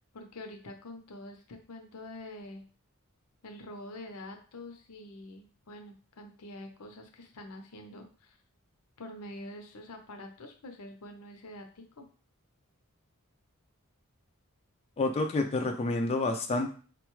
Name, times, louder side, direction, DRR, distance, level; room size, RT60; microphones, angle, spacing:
voice 1, 0.1-2.6 3.4-8.4 9.0-12.1, left 1 dB, 85° left, 4 dB, 0.7 m, -46 dB
voice 2, 15.0-16.7, left 2 dB, 30° left, 3 dB, 0.3 m, -28 dB
4.0 x 2.2 x 3.0 m, 0.40 s
head